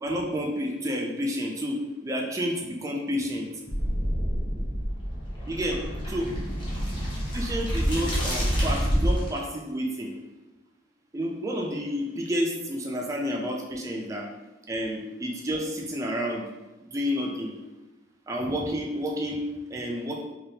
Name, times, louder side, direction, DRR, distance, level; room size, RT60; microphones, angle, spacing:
voice 1, 0.0-4.1 5.4-5.8 6.1-6.4 7.3-10.1 11.1-14.3 14.7-16.4 16.9-17.5 18.3-20.2, equal, 15° right, 0 dB, 0.3 m, -30 dB
sound 1, 3.7-9.4, equal, 25° left, 0.7 m, -28 dB
3.4 x 2.3 x 2.7 m, 1.1 s
head